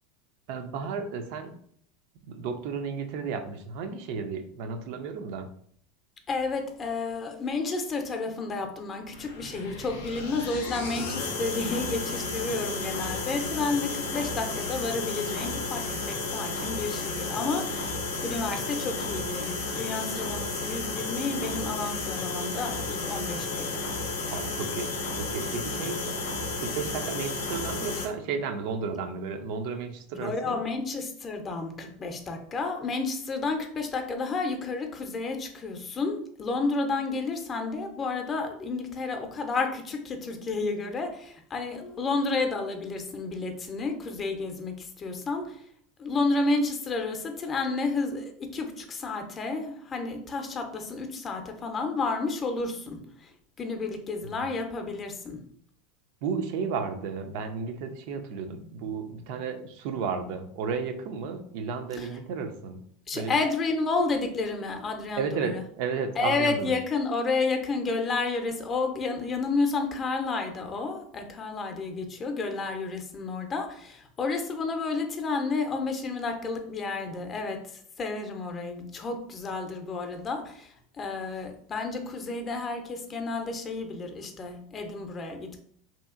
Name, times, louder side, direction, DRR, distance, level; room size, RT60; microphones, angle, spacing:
voice 1, 0.5-1.6 2.3-5.5 24.3-26.2 26.6-30.6 56.2-62.8 63.1-63.3 65.2-66.7, right 5 dB, 65° right, 6 dB, 0.4 m, -33 dB
voice 2, 6.3-23.8 25.8-26.1 30.2-45.6 46.0-55.4 62.0-62.1 63.1-65.6 66.2-77.6 78.0-85.6, left 3 dB, 30° left, 5 dB, 0.5 m, -31 dB
sound 1, 9.1-28.1, left 3 dB, 85° left, 0.5 m, -33 dB
2.7 x 2.4 x 2.4 m, 0.63 s
hypercardioid pair, 100°, 0 cm